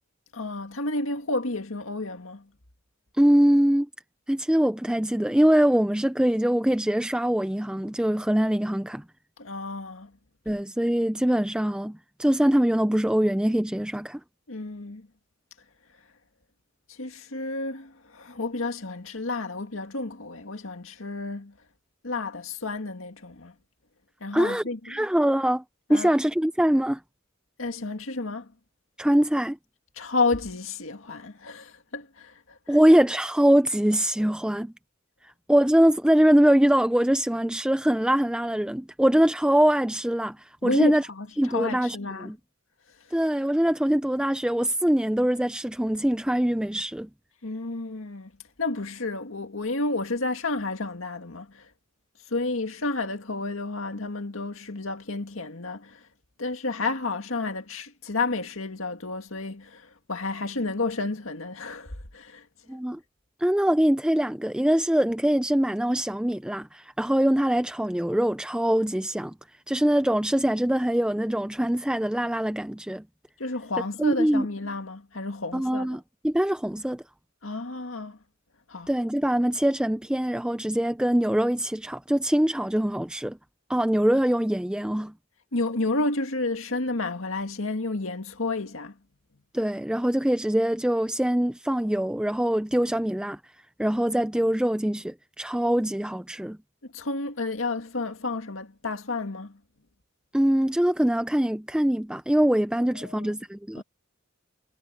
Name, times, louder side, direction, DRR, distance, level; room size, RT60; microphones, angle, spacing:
voice 1, 0.3-2.5 9.4-10.1 14.5-15.1 16.9-21.6 22.0-23.5 24.2-25.1 25.9-26.1 27.6-28.5 30.0-32.8 40.6-42.3 43.0-43.2 47.4-48.3 48.6-51.7 52.2-56.1 56.4-62.5 73.4-76.0 77.4-78.2 78.7-78.9 85.5-89.0 96.9-99.6 102.8-103.3 103.8-103.9, left 3 dB, 90° left, 2.0 m, -31 dB
voice 2, 3.2-3.9 4.3-9.0 10.5-14.2 24.3-25.6 25.9-27.0 29.0-29.6 32.7-34.7 35.2-41.0 41.4-42.3 43.1-47.1 62.7-63.0 63.4-69.3 69.7-73.0 74.0-74.4 75.5-77.0 78.9-83.4 83.7-85.1 89.5-93.4 93.8-96.6 100.3-103.8, equal, 5° right, 0.4 m, -23 dB
head